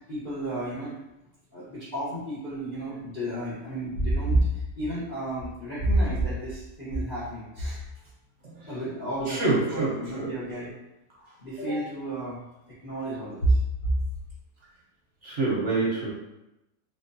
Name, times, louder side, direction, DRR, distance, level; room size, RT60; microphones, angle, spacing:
voice 1, 0.1-1.0 1.5-7.8 8.7-10.7 11.4-12.4 12.8-14.0, right 1 dB, 40° left, -10 dB, 0.8 m, -29 dB
voice 2, 9.3-10.3 15.2-16.1, right 3 dB, 50° right, -5 dB, 0.9 m, -27 dB
3.6 x 3.0 x 2.6 m, 0.91 s
omnidirectional pair, 2.0 m